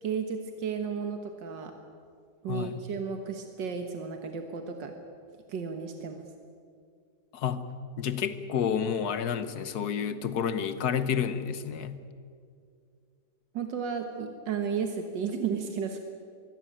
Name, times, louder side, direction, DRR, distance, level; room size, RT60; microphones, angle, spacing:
voice 1, 0.0-1.7 2.4-4.9 5.5-6.2 13.5-16.0, right 6 dB, 85° right, 6 dB, 2.0 m, -33 dB
voice 2, 2.5-2.8 7.3-7.6 8.0-12.0, left 7 dB, 65° left, 12 dB, 1.6 m, -30 dB
23.5 x 16.0 x 8.9 m, 2.3 s
omnidirectional pair, 1.9 m